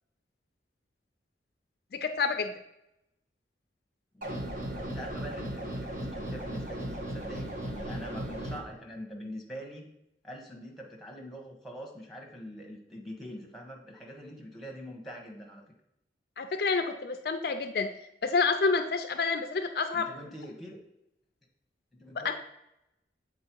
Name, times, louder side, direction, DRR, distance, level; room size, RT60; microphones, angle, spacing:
voice 1, 2.0-2.5 16.4-17.9 18.2-20.1 22.2-22.3, left 4 dB, 55° left, 7 dB, 0.4 m, -28 dB
sound 1, 4.2-8.6, right 1 dB, 45° right, 1.2 m, -36 dB
voice 2, 4.7-9.9 10.2-15.6 19.9-20.8 21.9-22.3, equal, ahead, 0 dB, 1.1 m, -43 dB
7.4 x 4.0 x 4.5 m, 0.83 s
head